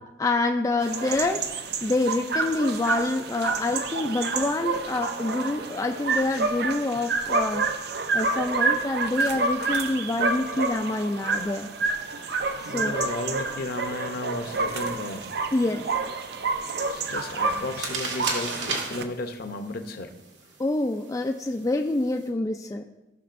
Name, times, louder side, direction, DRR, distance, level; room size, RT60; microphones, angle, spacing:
voice 1, 0.2-7.7 8.1-11.7 12.6-13.0 15.5-15.9 20.6-22.8, left 2 dB, 20° left, 4 dB, 0.3 m, -27 dB
sound 1, 0.8-19.0, right 3 dB, 60° right, 0.6 m, -29 dB
voice 2, 12.6-15.3 16.9-20.2, left 2 dB, 55° left, 8 dB, 0.7 m, -34 dB
sound 2, 14.9-22.3, right 3 dB, 85° right, 1.8 m, -37 dB
14.5 x 6.1 x 2.5 m, 0.99 s
head